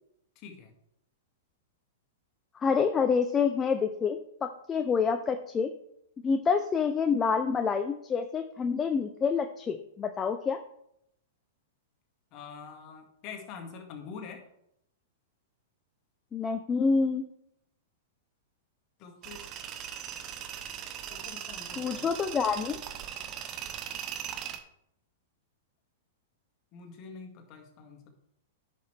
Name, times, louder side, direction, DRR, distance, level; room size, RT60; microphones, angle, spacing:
voice 1, 0.4-0.7 12.3-14.4 19.0-19.4 21.1-22.1 26.7-28.1, left 5 dB, 40° left, 3 dB, 1.9 m, -45 dB
voice 2, 2.6-5.7 6.2-10.6 16.3-17.2 21.8-22.8, left 5 dB, 20° left, 7 dB, 0.6 m, -27 dB
Tools, 19.2-24.6, right 9 dB, 35° right, 0.9 m, -39 dB
10.5 x 6.0 x 3.4 m, 0.75 s
hypercardioid pair, 105°, 0 cm